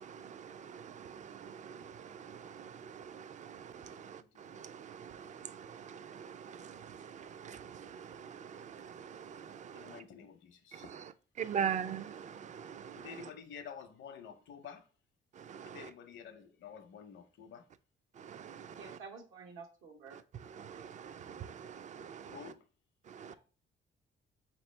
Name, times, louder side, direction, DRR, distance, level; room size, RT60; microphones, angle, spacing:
voice 1, 0.0-10.0 10.7-13.3 15.3-15.9 18.1-19.0 20.1-22.5 23.0-23.3, right 8 dB, 40° right, 0.4 m, -43 dB
voice 2, 3.8-4.6 9.7-10.9 12.9-14.9 15.6-17.7 22.3-22.6, left 7 dB, 70° left, 0.7 m, -50 dB
voice 3, 18.7-20.2 20.5-20.9, right 5 dB, 80° right, 1.1 m, -51 dB
5.1 x 3.0 x 3.1 m
cardioid pair, 90°, 20 cm